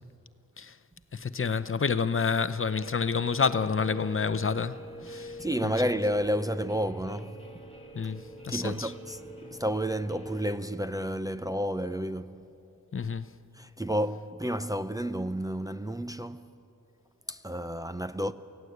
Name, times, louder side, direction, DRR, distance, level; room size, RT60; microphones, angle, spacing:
voice 1, 1.1-4.8 5.1-5.3 7.9-8.9 12.9-13.3, left 5 dB, 40° left, 0.7 m, -28 dB
Guitar, 2.6-10.5, equal, 20° left, 2.6 m, -44 dB
voice 2, 5.0-7.4 8.0-8.1 8.5-12.5 13.5-16.5 17.3-18.3, equal, 10° right, 0.6 m, -31 dB
24.0 x 16.5 x 8.1 m
cardioid pair, 75°, 34 cm